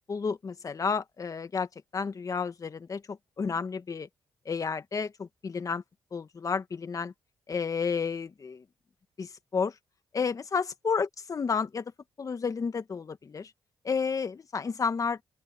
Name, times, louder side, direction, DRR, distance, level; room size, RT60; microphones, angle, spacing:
voice 1, 0.1-1.7 1.9-4.1 4.5-5.8 6.1-7.1 7.5-8.6 9.2-9.7 10.1-11.8 12.2-13.5 13.8-15.2, left 5 dB, 45° left, 1.7 m, -31 dB
open air
cardioid pair, 80°, 8 cm